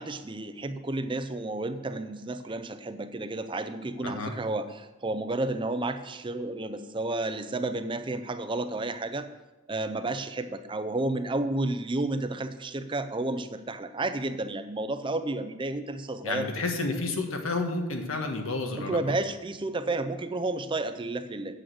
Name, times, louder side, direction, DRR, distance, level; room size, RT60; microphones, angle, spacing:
voice 1, 0.0-9.3 9.7-16.5 18.9-21.6, right 2 dB, 25° right, 9 dB, 0.5 m, -31 dB
voice 2, 4.0-4.3 16.2-19.0, left 3 dB, 75° left, 4 dB, 1.5 m, -30 dB
8.6 x 6.3 x 7.8 m, 1.1 s
head